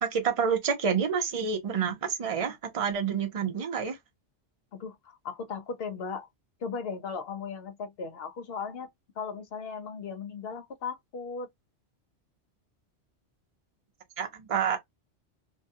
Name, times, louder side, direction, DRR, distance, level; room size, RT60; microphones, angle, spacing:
voice 1, 0.0-4.0 14.2-14.8, right 6 dB, 35° right, 0.6 m, -28 dB
voice 2, 4.7-6.3 6.6-8.9 9.2-11.5, left 5 dB, 65° left, 0.8 m, -37 dB
2.7 x 2.3 x 2.6 m
omnidirectional pair, 1.2 m